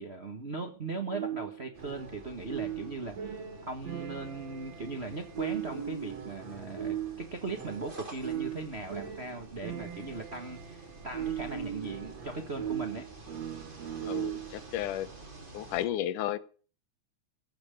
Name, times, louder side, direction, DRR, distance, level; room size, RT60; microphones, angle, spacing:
voice 1, 0.0-13.0, right 3 dB, 85° right, 0.5 m, -39 dB
sound 1, 1.1-14.7, right 10 dB, 55° right, 2.8 m, -39 dB
sound 2, 1.7-15.8, right 2 dB, 20° right, 1.9 m, -50 dB
voice 2, 14.1-15.1 15.5-16.4, left 12 dB, 80° left, 2.4 m, -33 dB
15.5 x 6.1 x 8.9 m
omnidirectional pair, 3.6 m